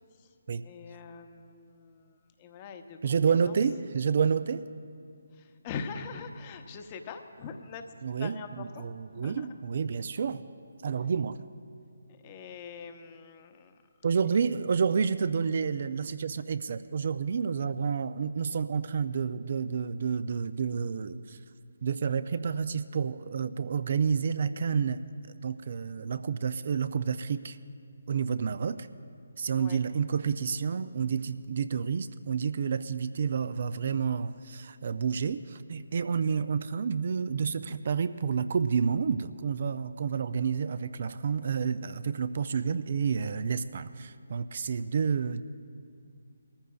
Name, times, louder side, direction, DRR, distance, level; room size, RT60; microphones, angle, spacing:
voice 1, 0.6-3.0 3.4-3.6 5.3-7.9 8.2-8.9 9.1-9.5 12.1-13.8 29.6-29.8, left 5 dB, 25° left, 7 dB, 0.9 m, -43 dB
voice 2, 3.0-4.7 8.0-10.4 10.8-11.4 14.0-21.4 21.8-25.0 25.4-27.6 28.1-28.9 29.4-45.4, right 6 dB, 50° right, 13 dB, 0.4 m, -29 dB
23.5 x 14.5 x 2.3 m, 2.3 s
figure-of-eight pair, 150°, 0 cm